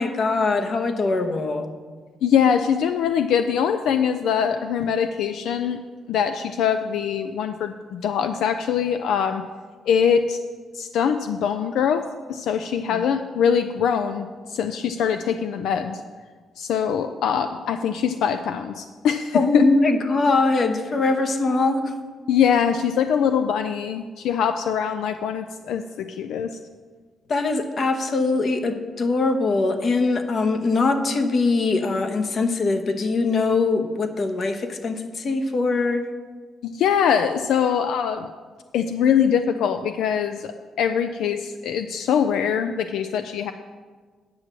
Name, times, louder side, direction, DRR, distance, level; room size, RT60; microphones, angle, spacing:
voice 1, 0.0-1.7 12.9-13.1 19.3-21.9 27.3-36.1, left 3 dB, 45° left, 6 dB, 1.0 m, -22 dB
voice 2, 2.2-5.8 6.1-9.4 9.9-10.4 10.7-16.0 16.6-19.6 22.3-26.6 36.6-38.3 38.7-43.5, left 7 dB, 80° left, 8 dB, 0.4 m, -23 dB
9.5 x 6.1 x 6.7 m, 1.5 s
cardioid pair, 105°, 0 cm